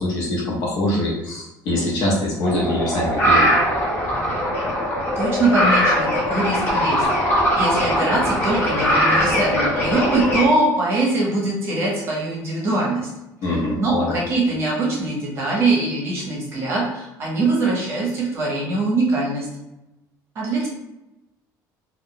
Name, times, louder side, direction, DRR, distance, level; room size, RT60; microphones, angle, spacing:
voice 1, 0.0-3.5 13.4-14.2, left 1 dB, 60° left, -2 dB, 0.8 m, -23 dB
sound 1, 2.4-10.5, equal, 25° left, 0.7 m, -20 dB
voice 2, 5.2-7.1 7.3-13.1 13.5-19.5 20.3-20.7, right 2 dB, 35° right, -3 dB, 0.8 m, -22 dB
2.3 x 2.1 x 3.7 m, 0.95 s
cardioid pair, 180°, 7 cm